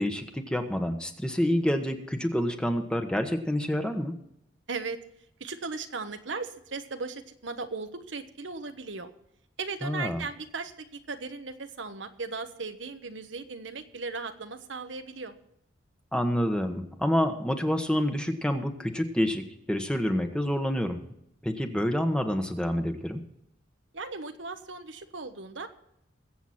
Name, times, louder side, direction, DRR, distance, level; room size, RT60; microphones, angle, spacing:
voice 1, 0.0-4.1 9.8-10.2 16.1-21.0 21.4-23.2, equal, 5° left, 5 dB, 1.2 m, -28 dB
voice 2, 4.7-5.0 5.4-9.1 9.6-15.3 23.9-25.7, right 4 dB, 90° right, 7 dB, 1.3 m, -37 dB
21.5 x 8.2 x 4.3 m, 0.77 s
head